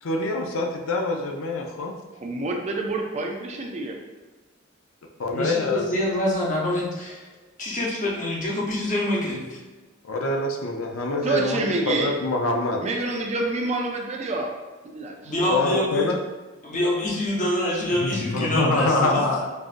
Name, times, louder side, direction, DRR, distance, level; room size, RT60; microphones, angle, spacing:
voice 1, 0.0-1.9 5.2-5.8 10.0-12.8 15.5-16.2 18.0-19.5, left 2 dB, 90° left, 2 dB, 0.5 m, -25 dB
voice 2, 2.2-4.0 11.1-12.1 12.8-14.5 14.9-15.3 18.6-18.8, right 2 dB, 35° right, 2 dB, 0.4 m, -27 dB
voice 3, 5.3-7.2 7.6-9.6 15.2-16.1 16.6-19.2, left 1 dB, 40° left, -4 dB, 1.0 m, -25 dB
5.3 x 2.5 x 2.5 m, 1.3 s
head